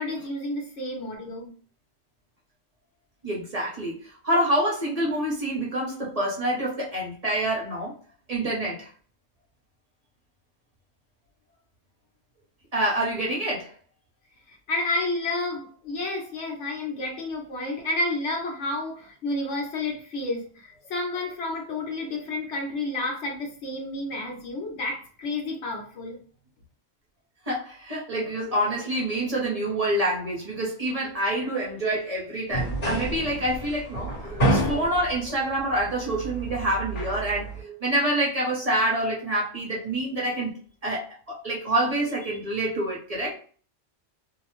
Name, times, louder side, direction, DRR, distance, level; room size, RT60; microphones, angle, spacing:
voice 1, 0.0-1.5 14.7-26.2, left 2 dB, 80° left, 0 dB, 1.2 m, -30 dB
voice 2, 3.2-7.9 8.3-8.9 12.7-13.7 27.5-40.5 40.8-41.0 41.3-43.4, right 1 dB, 35° right, -4 dB, 0.8 m, -27 dB
sound 1, 32.5-37.6, right 1 dB, 65° left, 1.4 m, -29 dB
2.7 x 2.0 x 3.0 m, 0.43 s
omnidirectional pair, 1.2 m